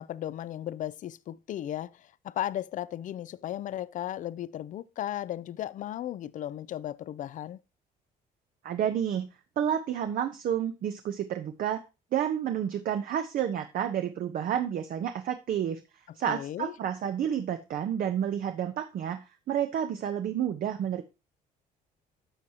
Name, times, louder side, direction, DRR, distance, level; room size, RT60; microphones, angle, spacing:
voice 1, 0.0-7.6 16.3-16.7, left 12 dB, 50° left, 0.5 m, -35 dB
voice 2, 8.6-9.3 9.6-11.8 12.1-15.8 16.1-19.2 19.5-21.0, right 9 dB, 60° right, 0.8 m, -30 dB
11.0 x 6.4 x 2.8 m
cardioid pair, 110°, 17 cm